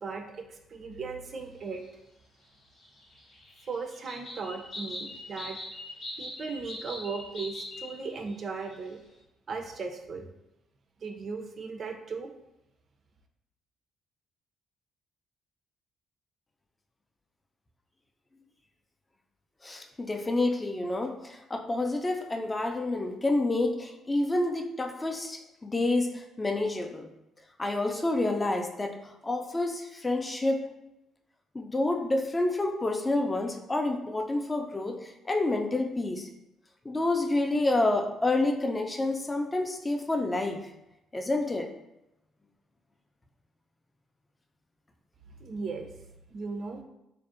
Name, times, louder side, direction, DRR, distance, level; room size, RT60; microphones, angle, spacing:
voice 1, 0.0-1.8 3.7-5.6 6.2-9.0 9.5-10.3 11.0-12.3 45.4-45.9 46.3-46.8, right 4 dB, 50° right, 4 dB, 0.4 m, -37 dB
sound 1, 2.8-8.0 8.3-8.4 8.7-8.9, left 2 dB, 60° left, 0.7 m, -41 dB
voice 2, 19.6-27.1 27.6-30.7 31.5-36.3 36.8-40.6 41.1-41.7, left 2 dB, 25° left, 4 dB, 0.3 m, -28 dB
2.5 x 2.0 x 2.4 m, 0.89 s
hypercardioid pair, 55°, 0 cm